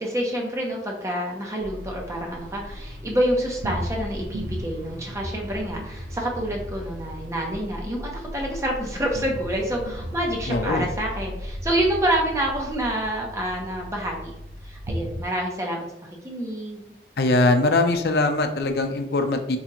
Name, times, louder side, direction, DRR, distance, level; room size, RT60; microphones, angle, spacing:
voice 1, 0.0-14.3 14.6-15.8 16.2-16.8, right 1 dB, 15° right, 0 dB, 0.7 m, -27 dB
sound 1, 1.6-15.3, equal, 70° right, 0.5 m, -36 dB
voice 2, 10.5-10.9 17.2-19.6, left 2 dB, 60° left, 6 dB, 0.4 m, -21 dB
4.6 x 2.4 x 2.9 m, 0.82 s
head